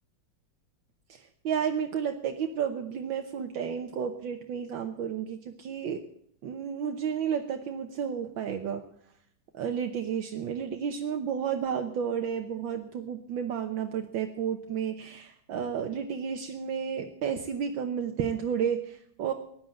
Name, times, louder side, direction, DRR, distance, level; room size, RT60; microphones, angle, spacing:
voice 1, 1.1-6.0 6.4-8.8 9.5-19.3, right 7 dB, 75° right, 5 dB, 1.7 m, -32 dB
16.0 x 10.5 x 7.8 m, 0.67 s
omnidirectional pair, 2.2 m